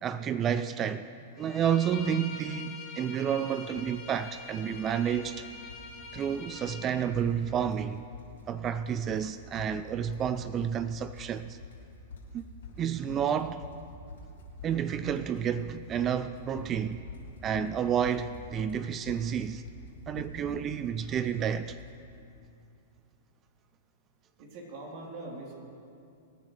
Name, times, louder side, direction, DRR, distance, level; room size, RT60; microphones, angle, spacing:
voice 1, 0.0-1.1 1.4-5.5 6.1-8.0 8.5-11.6 12.3-12.4 12.8-13.6 14.6-17.0 17.4-19.6 20.1-21.8, right 8 dB, 30° right, 0.4 m, -30 dB
Bowed string instrument, 1.4-6.9, left 4 dB, 30° left, 2.6 m, -45 dB
sound 1, 3.7-3.9 4.2-4.9 5.1-5.9 6.1-6.4 6.7-6.8 7.1-8.8 9.1-21.9, left 3 dB, 80° left, 3.8 m, -46 dB
voice 2, 24.4-25.6, right 2 dB, 50° right, 3.6 m, -42 dB
24.5 x 10.0 x 3.3 m
hypercardioid pair, 120°, 0 cm